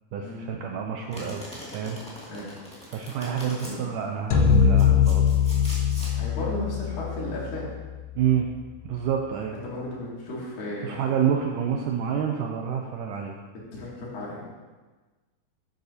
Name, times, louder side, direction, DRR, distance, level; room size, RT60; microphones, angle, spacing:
voice 1, 0.1-1.4 1.7-2.0 2.9-5.3 8.2-8.5 8.8-9.6 10.8-13.3, right 8 dB, 80° right, 2 dB, 1.9 m, -28 dB
Domestic sounds home sounds, 1.1-3.7 4.5-6.1, equal, 5° left, 1.0 m, -42 dB
sound 1, 4.3-8.6, left 7 dB, 85° left, 2.8 m, -23 dB
voice 2, 6.2-7.7 9.5-11.0 13.7-14.5, left 1 dB, 65° left, -6 dB, 4.0 m, -34 dB
12.0 x 9.3 x 2.8 m, 1.3 s
omnidirectional pair, 4.3 m